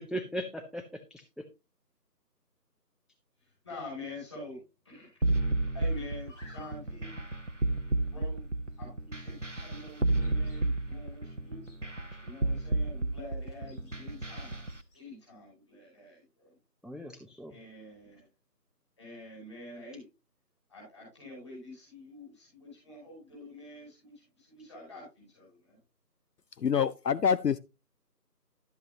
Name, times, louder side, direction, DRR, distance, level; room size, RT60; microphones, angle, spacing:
voice 1, 0.1-1.4 16.8-17.5, equal, ahead, 0.5 m, -38 dB
voice 2, 3.4-4.6 4.8-5.3 5.7-7.2 8.1-8.5 8.8-11.7 12.2-14.7 14.9-16.5 17.5-18.2 19.0-20.0 20.7-25.8, left 2 dB, 15° left, 5.6 m, -47 dB
sound 1, 5.2-14.7, right 2 dB, 50° right, 0.5 m, -31 dB
sound 2, 5.8-15.0, left 1 dB, 50° left, 5.8 m, -62 dB
voice 3, 26.6-27.6, left 7 dB, 75° left, 0.6 m, -26 dB
11.5 x 8.1 x 2.8 m
figure-of-eight pair, 170°, 49 cm